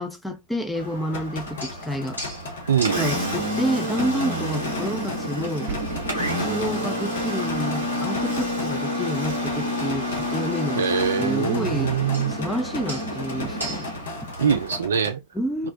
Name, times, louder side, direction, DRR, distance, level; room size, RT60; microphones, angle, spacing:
voice 1, 0.0-2.2 2.9-5.7 6.1-12.0 12.3-13.9 14.2-14.3 15.3-15.7, equal, 5° left, 0.4 m, -29 dB
Engine, 0.7-14.8, equal, 90° left, 1.0 m, -29 dB
sound 1, 1.1-15.1, left 4 dB, 60° left, 0.6 m, -38 dB
voice 2, 2.7-3.1 10.7-12.3 14.4-15.2, right 7 dB, 65° right, 0.4 m, -23 dB
sound 2, 5.7-7.5 7.8-7.9, right 5 dB, 45° right, 0.7 m, -39 dB
2.3 x 2.1 x 2.6 m
figure-of-eight pair, 90°, 0 cm